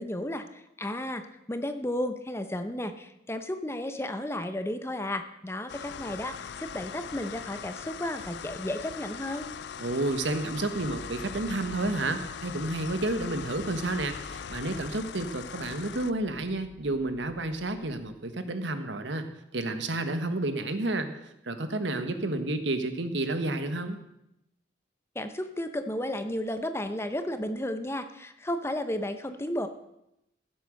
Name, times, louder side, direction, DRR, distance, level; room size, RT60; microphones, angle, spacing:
voice 1, 0.0-9.5 25.1-29.7, left 1 dB, 15° left, 9 dB, 0.7 m, -33 dB
sound 1, 5.7-16.1, left 7 dB, 60° left, 0.4 m, -41 dB
voice 2, 9.8-24.0, right 2 dB, 75° right, 9 dB, 1.3 m, -31 dB
sound 2, 10.9-18.2, right 1 dB, 35° right, 4.5 m, -51 dB
15.0 x 7.8 x 6.5 m, 0.84 s
head